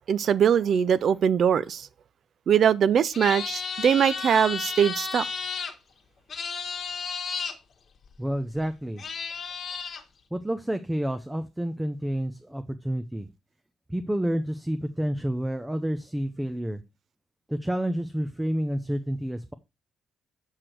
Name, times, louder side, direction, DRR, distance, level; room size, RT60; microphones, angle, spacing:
voice 1, 0.1-1.9 2.5-5.3, right 8 dB, 60° right, 0.4 m, -22 dB
sound 1, 3.1-5.7 6.3-7.5 8.6-8.7 9.0-10.0, left 5 dB, 50° left, 1.4 m, -33 dB
voice 2, 8.2-9.0 10.3-13.3 13.9-16.8 17.5-19.5, equal, 10° right, 0.6 m, -29 dB
6.4 x 6.0 x 4.5 m
cardioid pair, 90°, 0 cm